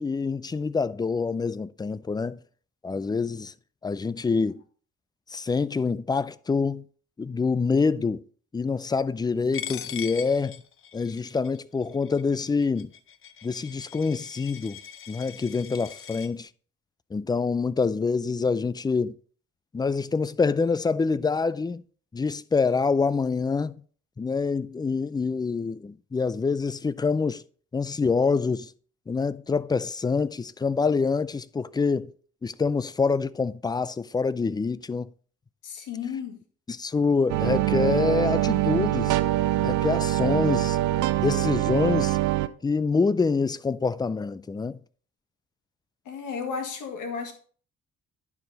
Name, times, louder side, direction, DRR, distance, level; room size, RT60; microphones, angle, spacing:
voice 1, 0.0-2.4 2.8-3.5 3.8-4.6 5.3-6.8 7.2-8.2 8.5-10.6 10.9-12.9 13.4-14.8 15.1-16.5 17.1-19.2 19.7-21.8 22.1-23.7 24.2-27.4 27.7-28.7 29.1-32.1 32.4-35.1 36.7-39.2 39.6-40.8 41.2-42.2 42.6-44.8, left 4 dB, 15° left, 0.4 m, -26 dB
Coin (dropping), 9.5-16.3, left 9 dB, 45° left, 0.7 m, -41 dB
voice 2, 35.6-36.4 46.1-47.3, left 6 dB, 85° left, 2.0 m, -33 dB
sound 1, 37.3-42.5, right 15 dB, 85° right, 0.6 m, -24 dB
10.5 x 4.7 x 4.0 m
cardioid pair, 90°, 30 cm